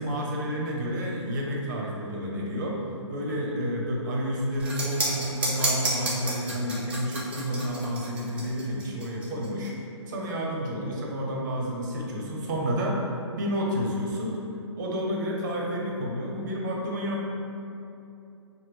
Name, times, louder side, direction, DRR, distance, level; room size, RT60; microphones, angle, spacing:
voice 1, 0.0-2.8 3.1-9.7 10.1-14.4 14.8-17.3, equal, 40° right, -2 dB, 0.8 m, -30 dB
sound 1, 4.6-9.7, right 2 dB, 10° right, 0.5 m, -30 dB
5.7 x 2.2 x 3.2 m, 2.8 s
figure-of-eight pair, 130°, 16 cm